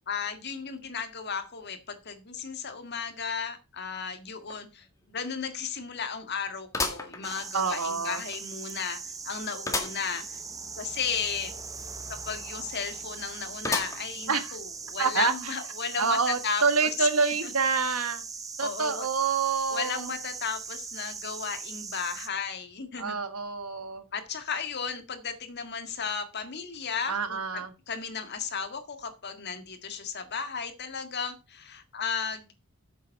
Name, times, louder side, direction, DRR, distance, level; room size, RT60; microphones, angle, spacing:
voice 1, 0.0-10.4 10.8-11.5 12.2-17.1 18.6-19.1 19.7-23.2 24.1-32.5, left 6 dB, 50° left, 1.7 m, -34 dB
sound 1, 4.5-4.6 5.0-5.1 6.7-7.8 8.3-8.4 9.7-10.1 10.5-10.6 10.8-10.9 13.6-14.3 14.8-14.9 15.9-16.0, left 3 dB, 15° left, 1.8 m, -32 dB
sound 2, 7.2-22.3, right 5 dB, 15° right, 0.8 m, -40 dB
voice 2, 7.5-8.2 14.3-14.6 15.0-15.5 16.0-18.2 18.6-20.1 23.0-24.0 27.1-27.7, right 5 dB, 80° right, 1.5 m, -27 dB
9.3 x 7.3 x 5.4 m
head